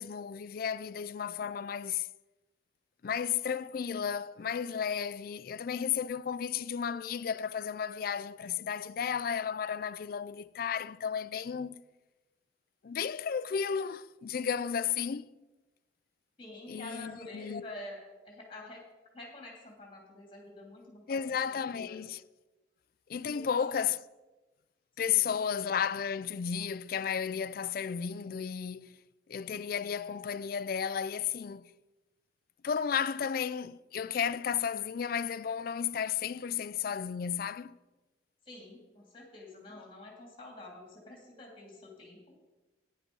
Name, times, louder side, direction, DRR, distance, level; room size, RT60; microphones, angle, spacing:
voice 1, 0.0-2.1 3.0-11.8 12.8-15.3 16.7-17.7 21.1-22.2 23.1-24.0 25.0-29.0 29.3-31.7 32.6-37.8, left 7 dB, 50° left, 0.3 m, -33 dB
voice 2, 16.4-18.8 19.1-22.0 23.3-23.6 25.0-25.3 38.4-42.2, left 2 dB, 25° left, 2.9 m, -48 dB
10.0 x 8.6 x 5.4 m
head